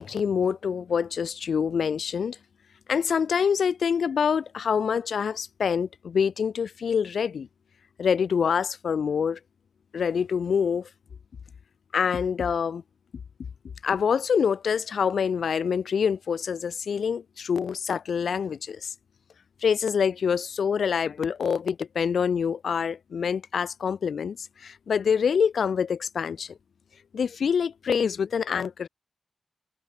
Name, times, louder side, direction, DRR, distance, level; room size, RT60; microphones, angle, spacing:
voice 1, 0.0-2.4 2.9-7.5 8.0-9.4 9.9-10.9 11.9-12.8 13.8-18.9 19.6-26.6 27.1-28.9, left 6 dB, 80° left, 0.5 m, -26 dB
wide cardioid pair, 160°, 0 cm